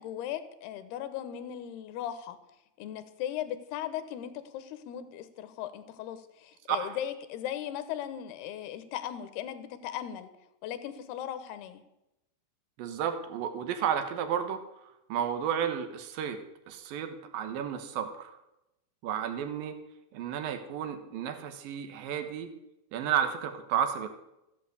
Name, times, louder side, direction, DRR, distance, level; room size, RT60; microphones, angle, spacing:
voice 1, 0.0-2.4 2.8-10.3 10.6-11.8, left 11 dB, 70° left, 11 dB, 2.7 m, -38 dB
voice 2, 12.8-16.4 16.7-18.4 19.0-19.8 20.1-22.5 22.9-24.1, right 8 dB, 65° right, 8 dB, 2.5 m, -32 dB
14.5 x 8.6 x 8.0 m, 0.90 s
omnidirectional pair, 5.4 m